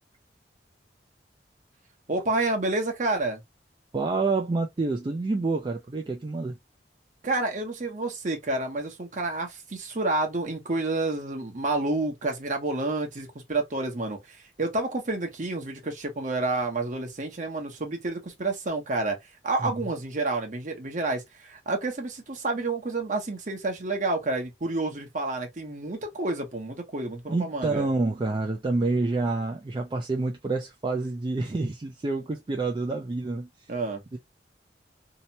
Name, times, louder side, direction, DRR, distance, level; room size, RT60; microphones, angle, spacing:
voice 1, 2.1-3.4 7.2-19.2 19.4-27.9 33.7-34.0, right 2 dB, 45° right, 0.9 m, -29 dB
voice 2, 3.9-6.5 19.6-19.7 27.3-33.5 34.1-34.2, right 3 dB, 25° right, 0.3 m, -28 dB
2.8 x 2.1 x 2.6 m
head